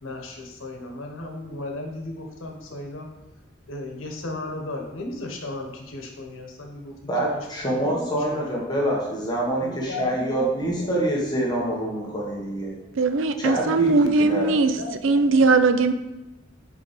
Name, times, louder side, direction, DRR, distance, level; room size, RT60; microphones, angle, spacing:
voice 1, 0.0-3.1 3.7-7.0 7.3-8.4 9.6-10.9 14.6-15.4, left 2 dB, 90° left, 2 dB, 1.1 m, -36 dB
voice 2, 7.1-12.7 13.4-13.9 14.2-14.5, right 1 dB, 20° left, -3 dB, 1.4 m, -26 dB
voice 3, 13.0-14.8 15.0-15.9, right 3 dB, 80° right, 10 dB, 0.5 m, -19 dB
5.1 x 4.8 x 5.0 m, 0.98 s
head